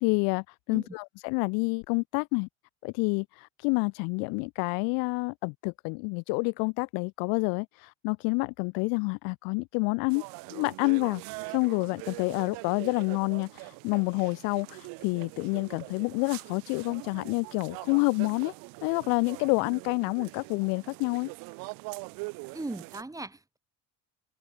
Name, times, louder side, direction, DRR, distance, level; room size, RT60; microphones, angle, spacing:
voice 1, 0.0-2.5 2.8-3.3 3.6-10.2 10.5-11.2 11.5-13.5 13.8-14.8 15.0-18.5 18.8-21.3, left 36 dB, 85° left, 0.5 m, -28 dB
sound 1, 10.1-23.0, right 30 dB, 85° right, 2.1 m, -43 dB
voice 2, 22.5-23.6, right 2 dB, 10° right, 3.2 m, -38 dB
cardioid pair, 110°, 33 cm